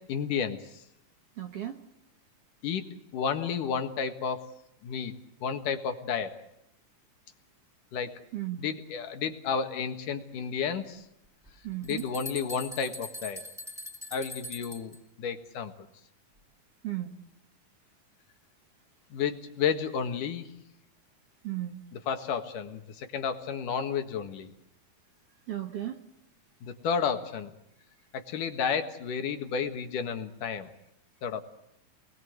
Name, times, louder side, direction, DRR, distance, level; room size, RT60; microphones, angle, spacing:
voice 1, 0.1-0.6 2.6-4.5 4.8-5.1 5.4-6.4 7.9-8.1 8.6-11.1 11.8-13.4 14.1-15.7 19.1-20.5 22.1-24.5 26.6-27.5 28.1-30.7 31.2-31.4, left 6 dB, 70° left, 7 dB, 3.1 m, -32 dB
voice 2, 1.4-1.8 8.3-8.7 11.6-12.1 16.8-17.2 21.4-21.8 25.5-26.0, right 13 dB, 55° right, 6 dB, 1.9 m, -35 dB
sound 1, 11.5-11.6 11.8-15.0, left 1 dB, ahead, 3.7 m, -42 dB
29.0 x 21.0 x 8.0 m, 0.82 s
omnidirectional pair, 3.9 m